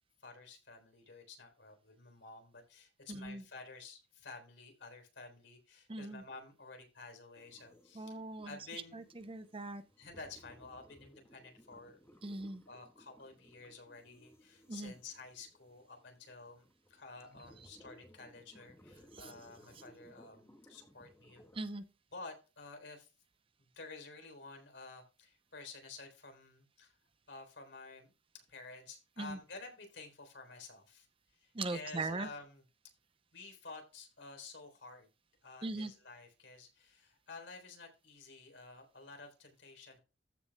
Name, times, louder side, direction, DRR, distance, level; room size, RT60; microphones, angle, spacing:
voice 1, 0.2-8.2 8.5-9.0 10.0-12.0 12.7-21.4 22.1-23.1 23.6-26.9 27.3-31.1 31.3-32.6 33.3-35.1 35.4-40.0, left 3 dB, 75° left, 3.7 m, -51 dB
voice 2, 3.1-3.4 5.9-6.2 8.0-8.6 8.9-9.8 12.2-12.6 14.7-14.9 19.1-19.3 21.5-21.8 29.2-29.4 31.5-32.3 35.6-35.9, right 2 dB, 30° right, 0.7 m, -40 dB
sound 1, 7.4-21.6, equal, 15° left, 1.6 m, -62 dB
14.5 x 7.0 x 2.3 m
head